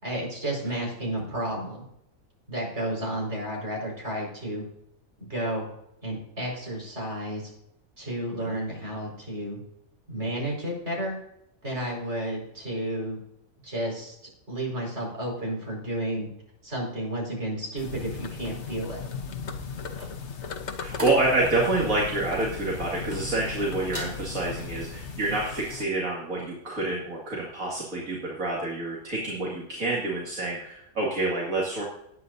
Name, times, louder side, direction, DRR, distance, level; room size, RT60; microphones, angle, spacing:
voice 1, 0.0-1.8 2.5-4.7 5.2-5.7 6.0-7.5 8.0-9.6 10.1-11.2 11.6-13.2 13.6-14.2 14.5-16.3 16.6-19.0, right 1 dB, 50° right, -2 dB, 5.3 m, -32 dB
sound 1, 17.8-25.8, left 5 dB, 55° left, 1.2 m, -37 dB
sound 2, 19.7-23.5 23.8-24.2 24.6-24.9, right 1 dB, 25° right, 4.4 m, -41 dB
voice 2, 20.8-31.8, right 2 dB, 70° right, -4 dB, 2.7 m, -28 dB
19.0 x 9.4 x 2.7 m, 0.78 s
omnidirectional pair, 1.5 m